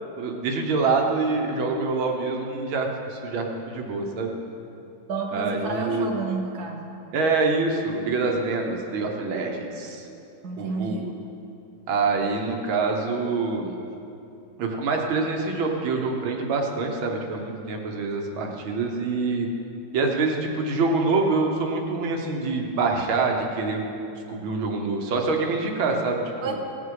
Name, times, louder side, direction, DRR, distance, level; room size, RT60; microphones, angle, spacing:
voice 1, 0.2-4.3 5.3-6.1 7.1-10.1 10.6-11.1 11.9-13.8 14.6-19.5 19.9-23.8 24.3-26.5, right 3 dB, 85° right, 2 dB, 1.9 m, -25 dB
voice 2, 5.1-6.9 10.4-11.0 26.4-26.5, right 3 dB, 55° right, 0 dB, 1.7 m, -30 dB
17.5 x 8.2 x 4.8 m, 2.7 s
omnidirectional pair, 2.2 m